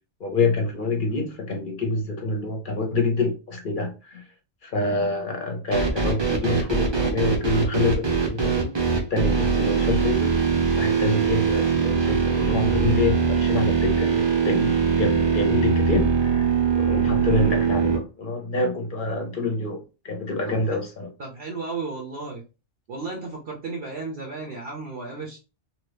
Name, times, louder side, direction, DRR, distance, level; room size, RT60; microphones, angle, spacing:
voice 1, 0.2-4.2 4.6-10.4 10.8-21.1, left 2 dB, 50° left, 0.8 m, -26 dB
sound 1, 5.7-18.0, right 5 dB, 30° right, 0.6 m, -22 dB
voice 2, 20.5-20.8 21.2-22.4 22.9-25.4, right 3 dB, 60° right, 0.8 m, -34 dB
2.8 x 2.5 x 3.3 m
omnidirectional pair, 1.2 m